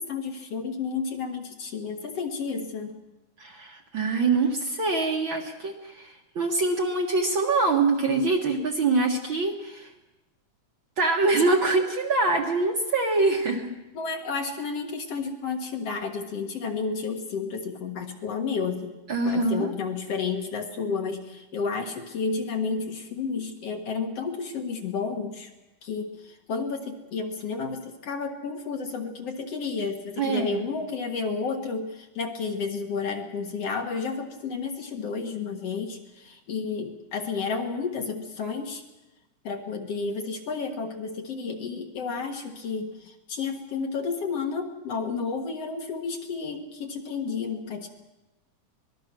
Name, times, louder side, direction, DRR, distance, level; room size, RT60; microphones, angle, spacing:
voice 1, 0.0-2.9 13.9-18.9 19.3-25.5 25.8-38.8 39.4-47.9, left 5 dB, 55° left, 3 dB, 2.6 m, -31 dB
voice 2, 3.4-9.9 11.0-13.7 19.1-19.7 30.2-30.6, right 3 dB, 45° right, 1 dB, 2.0 m, -24 dB
25.0 x 20.0 x 6.1 m, 1.0 s
omnidirectional pair, 3.6 m